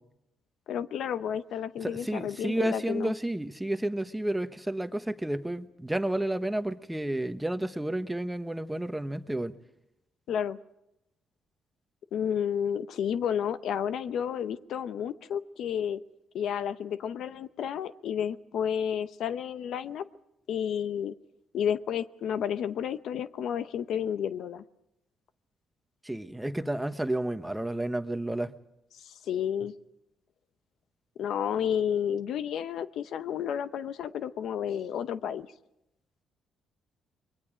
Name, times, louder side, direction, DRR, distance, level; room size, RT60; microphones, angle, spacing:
voice 1, 0.7-3.1 10.3-10.6 12.1-16.0 16.3-20.0 20.5-21.1 21.5-24.6 29.0-29.7 31.2-35.5, left 8 dB, 75° left, 0.7 m, -31 dB
voice 2, 1.8-9.5 26.0-28.5, right 1 dB, 10° right, 1.1 m, -31 dB
29.0 x 22.0 x 5.0 m
cardioid pair, 90°, 0 cm